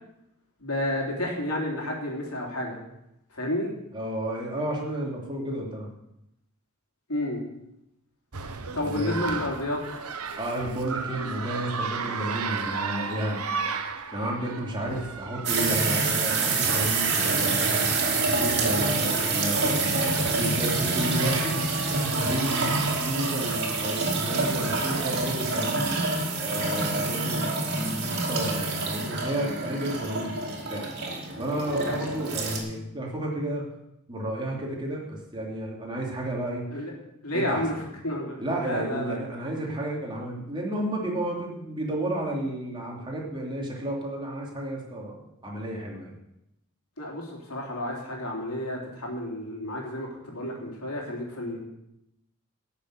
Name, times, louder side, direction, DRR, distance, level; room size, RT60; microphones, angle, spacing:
voice 1, 0.6-2.8 3.3-3.7 7.1-7.4 8.7-9.8 36.7-36.9 37.2-39.2 47.0-51.6, left 1 dB, 80° left, -1 dB, 3.5 m, -31 dB
voice 2, 3.9-5.9 8.8-9.2 10.4-13.4 14.1-19.9 20.2-21.6 22.2-26.0 26.4-30.9 31.4-33.6 34.1-36.7 37.3-37.7 38.4-46.1, right 1 dB, 20° right, -2 dB, 2.9 m, -32 dB
sound 1, 8.3-25.4, right 5 dB, 85° right, 1.0 m, -36 dB
sound 2, 15.4-32.6, right 3 dB, 50° right, 2.9 m, -27 dB
13.0 x 6.8 x 8.0 m, 0.86 s
head